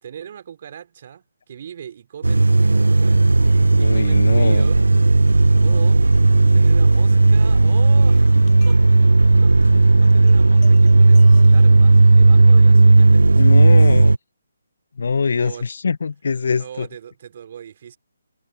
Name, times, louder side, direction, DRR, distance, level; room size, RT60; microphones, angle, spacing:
voice 1, 0.0-4.9 5.6-14.0 15.4-15.7 16.6-18.0, right 9 dB, 45° right, 3.5 m, -39 dB
sound 1, 2.2-14.2, right 3 dB, 80° right, 0.3 m, -13 dB
sound 2, 3.1-12.5, left 7 dB, 10° left, 6.6 m, -45 dB
voice 2, 3.8-4.6 13.4-14.2 15.0-16.9, left 5 dB, 60° left, 1.4 m, -22 dB
sound 3, 4.3-11.7, left 14 dB, 30° left, 6.9 m, -54 dB
figure-of-eight pair, 145°, 0 cm